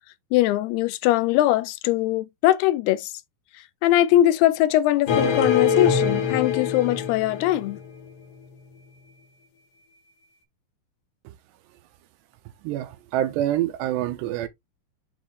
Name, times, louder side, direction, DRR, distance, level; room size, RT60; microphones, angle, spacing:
voice 1, 0.3-3.1 3.8-7.8, left 14 dB, 80° left, 2.5 m, -21 dB
sound 1, 5.1-8.1, left 6 dB, 60° left, 2.3 m, -24 dB
voice 2, 12.6-14.5, right 12 dB, 85° right, 3.0 m, -26 dB
7.2 x 4.4 x 3.2 m
omnidirectional pair, 4.9 m